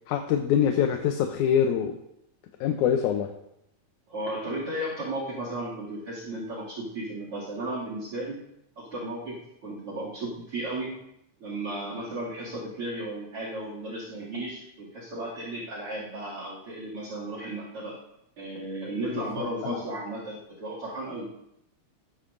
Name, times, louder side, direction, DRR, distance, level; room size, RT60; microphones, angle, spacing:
voice 1, 0.1-2.0 2.6-3.3 19.1-19.8, left 8 dB, 85° left, 5 dB, 2.2 m, -25 dB
voice 2, 4.1-8.4 8.8-11.0 11.4-18.0 18.4-21.3, right 1 dB, 50° right, -4 dB, 3.2 m, -34 dB
19.0 x 9.8 x 2.6 m, 0.80 s
omnidirectional pair, 3.4 m